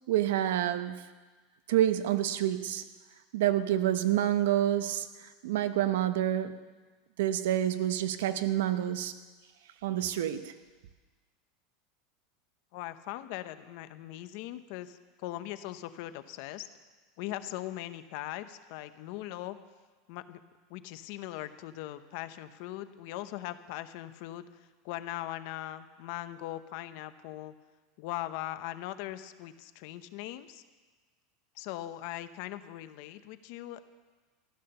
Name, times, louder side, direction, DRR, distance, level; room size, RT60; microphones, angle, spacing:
voice 1, 0.1-1.0 1.7-2.8 3.3-6.6 7.2-9.1 9.8-10.5, right 12 dB, 80° right, 11 dB, 0.9 m, -28 dB
voice 2, 12.7-16.7 17.2-19.6 20.1-20.4 20.7-27.5 28.0-30.6 31.6-33.9, left 14 dB, 55° left, 12 dB, 0.7 m, -40 dB
15.0 x 10.5 x 6.8 m, 1.3 s
supercardioid pair, 160°, 0 cm